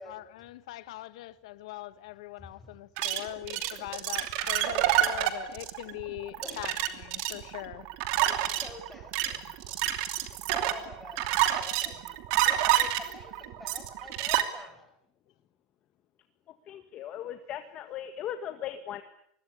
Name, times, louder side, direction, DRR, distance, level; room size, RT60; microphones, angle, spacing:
voice 1, 0.0-7.8, left 16 dB, 90° left, 1.5 m, -41 dB
voice 2, 2.4-2.8 6.4-6.6 8.2-9.9 10.5-12.1 12.4-14.9, left 1 dB, 5° left, 6.0 m, -46 dB
sound 1, 3.0-14.4, right 13 dB, 50° right, 2.8 m, -28 dB
voice 3, 16.7-19.0, left 10 dB, 30° left, 1.7 m, -38 dB
27.0 x 21.5 x 9.9 m
supercardioid pair, 175°, 3 cm